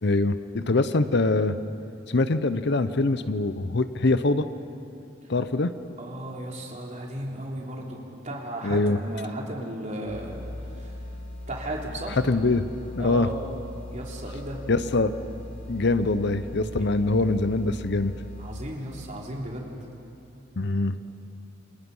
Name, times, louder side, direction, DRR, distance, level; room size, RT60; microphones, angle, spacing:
voice 1, 0.0-1.6 2.1-4.5 5.3-5.7 8.6-9.0 12.2-12.7 12.9-13.3 14.7-15.1 15.7-18.1 20.6-21.0, left 2 dB, 60° left, 12 dB, 0.8 m, -23 dB
voice 2, 6.0-10.4 10.7-10.9 11.5-12.2 13.0-13.3 13.9-14.6 18.4-19.7, right 1 dB, 40° right, -1 dB, 3.6 m, -35 dB
sound 1, 10.1-18.8, left 1 dB, 85° left, 4.0 m, -40 dB
29.0 x 27.0 x 5.6 m, 2.7 s
head